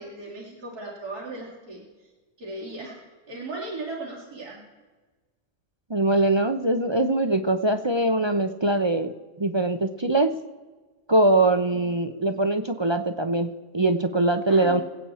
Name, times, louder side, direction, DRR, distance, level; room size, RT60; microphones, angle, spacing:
voice 1, 0.0-1.8 2.4-4.7 11.7-11.9 14.5-14.8, right 2 dB, 85° right, -6 dB, 3.4 m, -37 dB
voice 2, 5.9-9.1 9.4-10.3 11.1-14.8, right 2 dB, 35° right, 8 dB, 0.4 m, -22 dB
25.0 x 8.7 x 4.3 m, 1.3 s
omnidirectional pair, 1.6 m